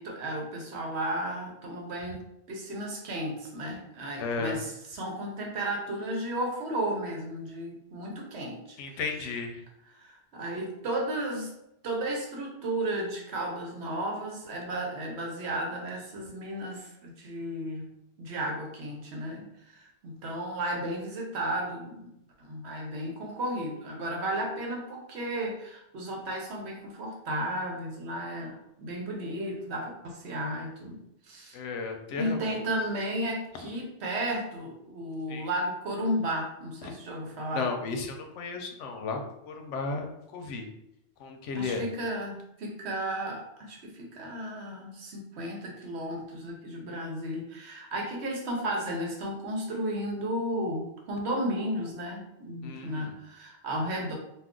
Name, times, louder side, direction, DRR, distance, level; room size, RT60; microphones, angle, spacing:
voice 1, 0.0-2.2 2.5-8.8 9.2-9.3 10.0-11.5 11.8-17.9 18.2-22.1 22.4-31.6 32.2-37.7 41.5-54.1, right 1 dB, 70° right, 0 dB, 1.0 m, -34 dB
voice 2, 4.2-4.6 8.8-9.6 31.5-32.4 35.3-35.5 36.8-36.9 37.5-40.1 40.3-40.7 41.2-41.8 52.6-53.1, left 4 dB, 85° left, 4 dB, 0.9 m, -34 dB
2.4 x 2.4 x 3.6 m, 0.81 s
omnidirectional pair, 1.2 m